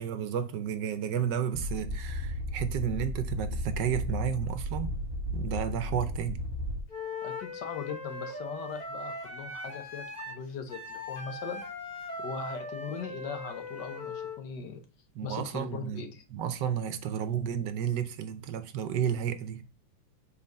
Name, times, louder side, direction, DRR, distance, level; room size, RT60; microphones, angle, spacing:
voice 1, 0.0-5.0 5.3-6.4 15.1-19.6, right 9 dB, 70° right, 1.2 m, -32 dB
sound 1, 1.5-6.8, equal, 20° right, 1.5 m, -34 dB
Wind instrument woodwind instrument, 6.9-14.4, left 2 dB, 25° left, 1.1 m, -39 dB
voice 2, 7.2-11.6 12.2-14.8 15.2-16.2, left 6 dB, 65° left, 1.4 m, -40 dB
5.6 x 3.9 x 5.2 m
omnidirectional pair, 2.1 m